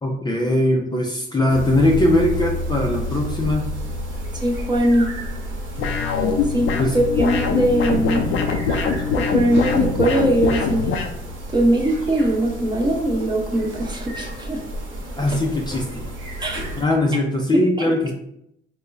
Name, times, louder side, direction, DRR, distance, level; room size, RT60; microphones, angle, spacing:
voice 1, 0.0-3.7 6.8-7.0 8.7-8.8 15.2-16.0 16.6-18.1, left 1 dB, 20° left, 1 dB, 0.5 m, -20 dB
sound 1, 1.5-16.8, equal, 75° right, 0.9 m, -31 dB
voice 2, 4.4-5.1 6.5-8.3 9.2-10.9 11.5-14.6 16.4-16.6 17.8-17.9, right 1 dB, 20° right, 0 dB, 0.8 m, -20 dB
sound 2, 5.8-11.1, left 5 dB, 85° left, 0.5 m, -23 dB
3.7 x 2.2 x 3.2 m, 0.77 s
cardioid pair, 90°, 20 cm